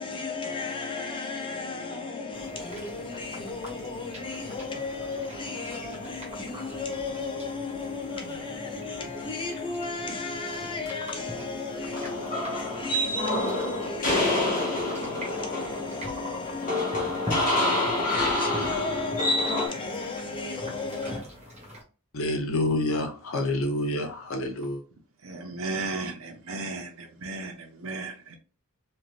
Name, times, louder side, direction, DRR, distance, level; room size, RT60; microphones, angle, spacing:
voice 1, 0.0-21.2, left 3 dB, 20° left, 0.6 m, -34 dB
sound 1, 2.3-21.8, left 1 dB, 30° right, 1.1 m, -42 dB
sound 2, 11.9-19.7, left 1 dB, 40° left, 1.1 m, -27 dB
voice 2, 22.1-24.8, left 1 dB, 60° left, 0.8 m, -28 dB
voice 3, 25.2-28.4, right 3 dB, 60° right, 0.7 m, -35 dB
3.2 x 2.7 x 2.4 m
head